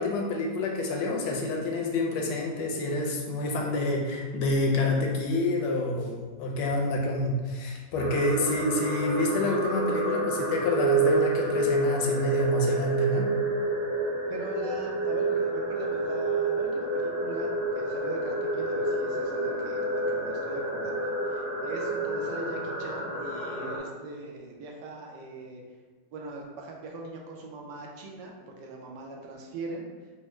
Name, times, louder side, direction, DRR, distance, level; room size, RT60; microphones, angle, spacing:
voice 1, 0.0-13.3, left 2 dB, 85° left, 0 dB, 1.3 m, -28 dB
sound 1, 7.9-23.8, right 2 dB, 45° right, 1.1 m, -29 dB
voice 2, 14.3-25.6 26.1-29.8, right 2 dB, 85° right, 0 dB, 1.3 m, -40 dB
4.3 x 2.0 x 3.0 m, 1.4 s
omnidirectional pair, 1.9 m